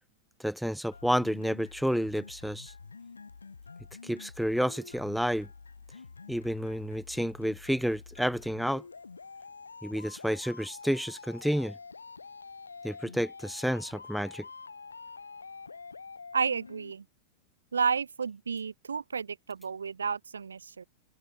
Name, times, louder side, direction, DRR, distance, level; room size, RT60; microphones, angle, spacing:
voice 1, 0.4-2.7 4.0-5.5 6.3-8.8 9.8-11.7 12.8-14.5, equal, ahead, 0.4 m, -30 dB
sound 1, 0.9-16.9, left 4 dB, 75° left, 4.3 m, -47 dB
voice 2, 16.3-17.1 17.7-20.8, right 6 dB, 75° right, 2.1 m, -31 dB
open air
figure-of-eight pair, 90°, 0 cm